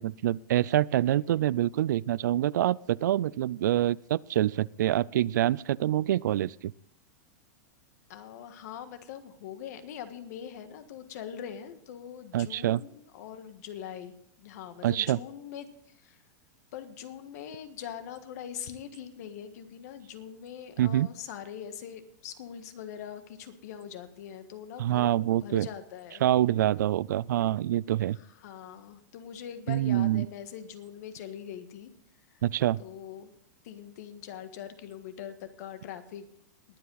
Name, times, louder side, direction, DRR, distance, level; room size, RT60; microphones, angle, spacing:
voice 1, 0.0-6.7 12.3-12.8 14.8-15.2 20.8-21.1 24.8-25.7 26.2-28.2 29.7-30.3 32.4-32.8, right 13 dB, 80° right, 23 dB, 0.4 m, -26 dB
voice 2, 8.1-16.2 16.7-26.2 28.2-31.9 32.8-33.3 33.6-36.2, left 9 dB, 65° left, 9 dB, 1.6 m, -42 dB
20.0 x 8.4 x 4.0 m, 0.67 s
supercardioid pair, 140°, 10 cm